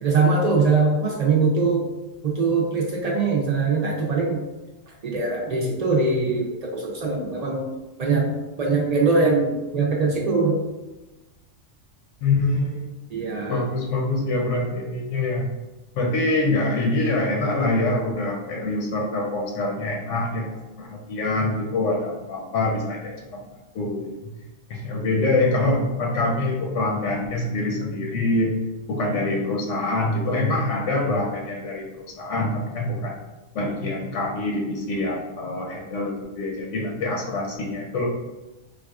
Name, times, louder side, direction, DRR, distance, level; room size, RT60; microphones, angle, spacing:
voice 1, 0.0-1.9 2.2-4.4 5.0-7.6 8.0-8.3 8.6-10.6 13.1-13.6, right 4 dB, 60° right, -3 dB, 0.4 m, -22 dB
voice 2, 12.2-13.1 13.5-15.5 15.9-23.4 23.7-24.1 24.7-28.5 28.9-33.2 33.5-38.1, left 2 dB, 90° left, -1 dB, 1.0 m, -25 dB
3.9 x 2.3 x 2.3 m, 1.1 s
omnidirectional pair, 1.2 m